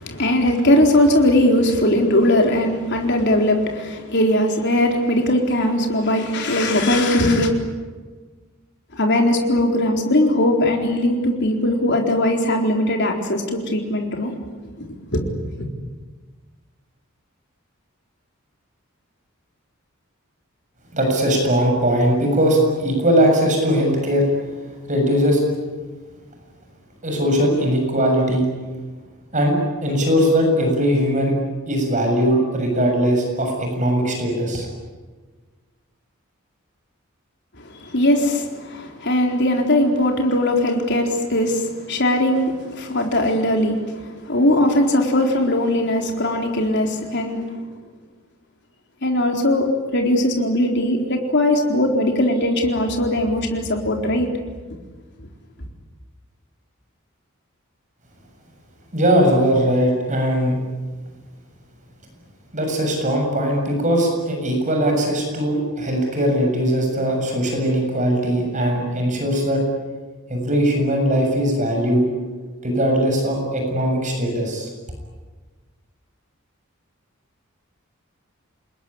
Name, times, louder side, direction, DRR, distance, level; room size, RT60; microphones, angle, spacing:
voice 1, 0.0-7.5 8.9-14.3 14.8-15.3 37.6-47.6 49.0-54.3, left 1 dB, 55° left, 2 dB, 4.1 m, -20 dB
voice 2, 20.9-24.2 24.9-25.4 27.0-28.5 29.3-29.6 29.8-31.3 31.7-34.7 58.9-60.6 62.5-69.6 70.3-72.0 72.6-74.7, equal, 35° right, 2 dB, 7.2 m, -20 dB
28.0 x 21.0 x 10.0 m, 1.4 s
head